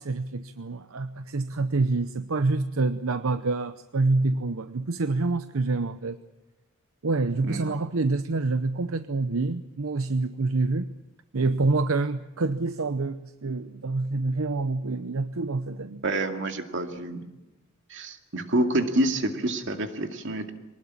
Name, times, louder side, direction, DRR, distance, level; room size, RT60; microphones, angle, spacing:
voice 1, 0.0-6.2 7.0-10.9 11.3-16.0, right 3 dB, 80° right, 11 dB, 0.8 m, -27 dB
voice 2, 16.0-17.3 17.9-20.5, right 1 dB, 60° right, 5 dB, 2.3 m, -27 dB
24.0 x 19.5 x 8.7 m, 1.0 s
head